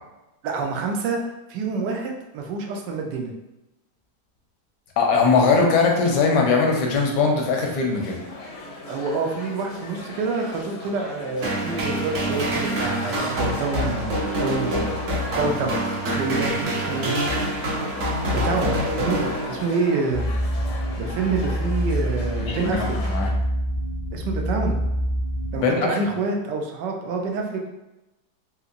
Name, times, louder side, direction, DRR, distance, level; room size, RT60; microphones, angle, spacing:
voice 1, 0.4-1.2 1.5-3.3 8.9-14.9 15.4-15.7 16.2-17.1 18.3-20.3 21.0-22.9 24.1-24.8 25.5-27.7, right 4 dB, 85° right, 2 dB, 1.2 m, -27 dB
voice 2, 5.0-8.2 22.4-23.3 25.6-26.0, left 4 dB, 80° left, 1 dB, 1.3 m, -20 dB
sound 1, 7.9-23.3, left 2 dB, 65° left, 0.8 m, -37 dB
sound 2, 11.4-19.9, right 1 dB, 55° right, 0.9 m, -26 dB
sound 3, 20.1-25.6, equal, 40° right, 0.5 m, -26 dB
3.6 x 2.8 x 2.5 m, 0.97 s
omnidirectional pair, 1.8 m